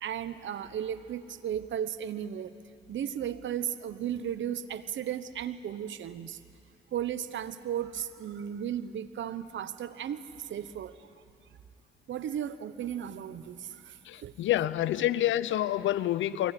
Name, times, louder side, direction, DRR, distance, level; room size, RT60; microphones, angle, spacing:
voice 1, 0.0-2.6 2.9-6.4 6.9-11.1 12.1-14.3, right 9 dB, 75° right, 13 dB, 1.1 m, -35 dB
voice 2, 14.0-16.5, left 13 dB, 85° left, 17 dB, 0.7 m, -28 dB
23.5 x 18.5 x 9.9 m, 2.4 s
supercardioid pair, 60°, 19 cm